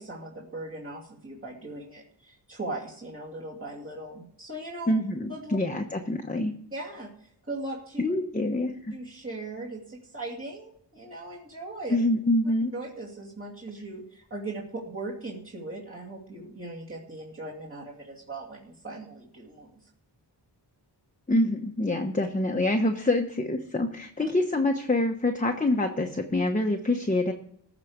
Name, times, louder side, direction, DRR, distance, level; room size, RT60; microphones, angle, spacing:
voice 1, 0.0-4.9 5.3-5.6 6.7-8.0 8.9-12.0 12.7-19.8, right 2 dB, 30° right, -5 dB, 2.6 m, -39 dB
voice 2, 4.9-6.5 8.0-8.9 11.9-12.7 21.3-27.3, left 1 dB, 20° left, 4 dB, 1.1 m, -26 dB
14.5 x 5.0 x 8.0 m, 0.69 s
wide cardioid pair, 80°, 44 cm